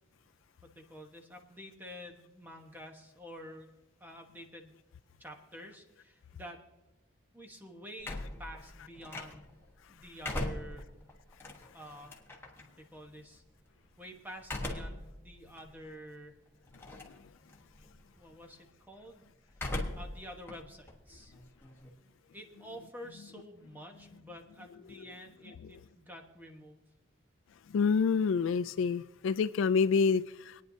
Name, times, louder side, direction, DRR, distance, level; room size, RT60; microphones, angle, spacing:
voice 1, 0.7-3.7 4.0-4.7 5.2-6.6 7.3-9.5 9.9-10.8 11.7-12.2 12.8-13.4 14.0-16.4 18.2-19.3 20.0-21.3 22.3-26.8, equal, 10° right, 1.1 m, -49 dB
sound 1, 8.0-9.6 10.0-12.6 14.4-15.1 15.6-15.7 16.7-17.2 17.5-18.0 19.5-20.2 20.5-21.9, left 1 dB, 10° left, 1.2 m, -39 dB
voice 2, 27.7-30.6, left 5 dB, 65° left, 0.3 m, -28 dB
25.0 x 9.6 x 2.7 m
head